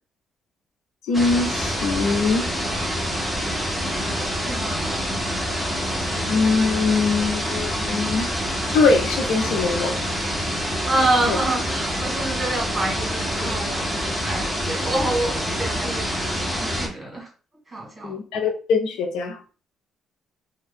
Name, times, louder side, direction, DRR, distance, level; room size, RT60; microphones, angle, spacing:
voice 1, 1.1-2.5 6.3-8.3 8.7-10.0 11.3-11.4 18.0-19.4, left 4 dB, 85° left, 5 dB, 0.6 m, -22 dB
sound 1, 1.1-16.9, equal, 5° left, 1.1 m, -26 dB
voice 2, 4.5-4.9 10.9-13.9 14.2-17.3 17.7-18.2, right 2 dB, 20° right, -1 dB, 1.6 m, -27 dB
2.6 x 2.3 x 3.5 m, 0.36 s
cardioid pair, 90°, 0 cm